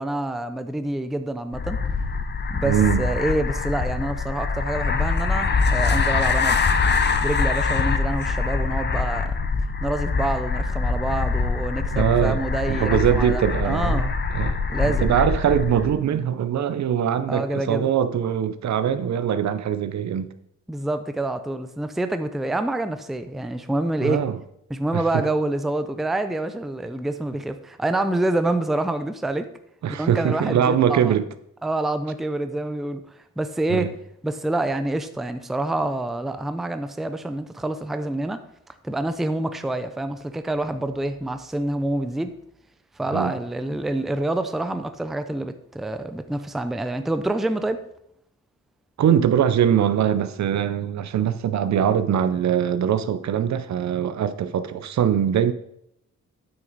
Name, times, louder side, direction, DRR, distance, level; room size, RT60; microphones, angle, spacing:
voice 1, 0.0-1.8 2.5-6.7 7.2-9.4 9.8-14.2 14.7-15.1 17.3-17.9 20.7-24.2 24.7-29.5 29.9-31.1 31.6-33.0 33.4-33.9 34.2-38.4 38.8-42.3 43.0-47.8, right 2 dB, ahead, 9 dB, 0.4 m, -27 dB
sound 1, 1.5-16.0, left 4 dB, 35° left, 0.7 m, -24 dB
voice 2, 2.6-3.1 11.9-12.4 12.7-14.0 14.3-14.6 14.8-20.3 24.0-24.4 24.9-25.2 29.8-31.3 33.7-33.9 43.1-43.3 49.0-55.5, right 9 dB, 65° right, 12 dB, 0.6 m, -22 dB
9.1 x 6.1 x 4.0 m, 0.75 s
wide cardioid pair, 120°, 31 cm